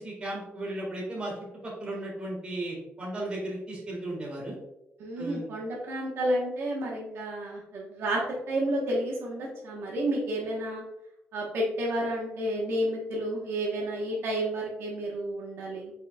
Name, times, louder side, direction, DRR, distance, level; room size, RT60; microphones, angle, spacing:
voice 1, 0.0-1.3 1.6-4.5 5.2-5.5, right 1 dB, 25° right, -3 dB, 1.7 m, -35 dB
voice 2, 5.0-8.2 8.5-10.8 11.3-15.9, right 1 dB, 65° right, -3 dB, 1.1 m, -31 dB
5.6 x 4.1 x 2.3 m, 0.88 s
cardioid pair, 165°, 4 cm